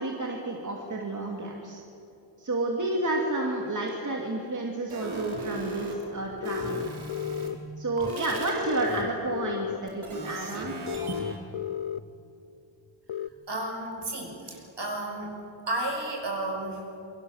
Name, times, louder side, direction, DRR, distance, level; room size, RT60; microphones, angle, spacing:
voice 1, 0.0-1.8 2.4-6.8 7.8-10.7 11.1-11.2, right 2 dB, 40° right, -1 dB, 2.8 m, -31 dB
sound 1, 3.9-4.0 4.9-7.5 8.0-9.0 9.9-11.4, right 2 dB, 80° right, 4.4 m, -37 dB
sound 2, 6.4-7.6 8.7-9.8 10.9-12.0 13.1-13.3, left 9 dB, 70° left, 0.7 m, -33 dB
voice 2, 13.5-15.3 15.7-16.9, right 1 dB, 55° right, 1 dB, 6.3 m, -32 dB
28.0 x 24.5 x 7.3 m, 2.8 s
wide cardioid pair, 135°, 48 cm